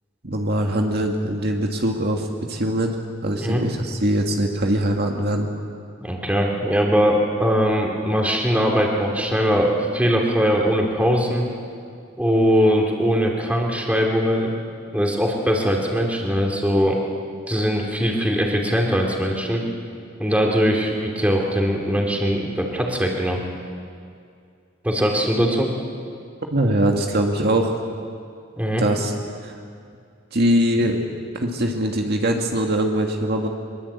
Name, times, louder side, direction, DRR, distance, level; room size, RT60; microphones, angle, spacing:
voice 1, 0.2-5.5 26.5-27.7 28.8-29.1 29.4-29.5 30.3-31.0 31.3-33.5, right 1 dB, 55° right, 2 dB, 2.1 m, -22 dB
voice 2, 6.0-11.4 12.2-14.5 14.9-17.0 17.5-19.6 20.2-23.4 24.8-25.7 28.6-28.8, equal, 5° right, 0 dB, 3.1 m, -21 dB
23.5 x 22.0 x 8.5 m, 2.3 s
head